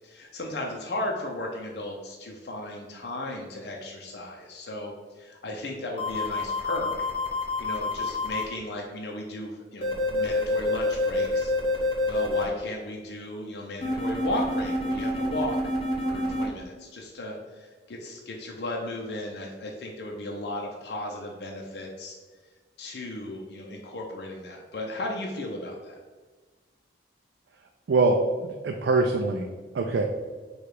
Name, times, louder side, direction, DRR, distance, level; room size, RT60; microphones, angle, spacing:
voice 1, 0.0-7.1 7.6-11.5 12.1-15.7 16.0-22.2 22.8-26.0, left 1 dB, 70° left, 0 dB, 0.5 m, -35 dB
sound 1, 6.0-8.4 9.8-12.4 13.8-16.4, left 2 dB, 30° left, 1.0 m, -27 dB
voice 2, 27.9-29.5 29.7-30.0, right 3 dB, 75° right, 3 dB, 0.4 m, -23 dB
4.8 x 2.3 x 4.7 m, 1.4 s
head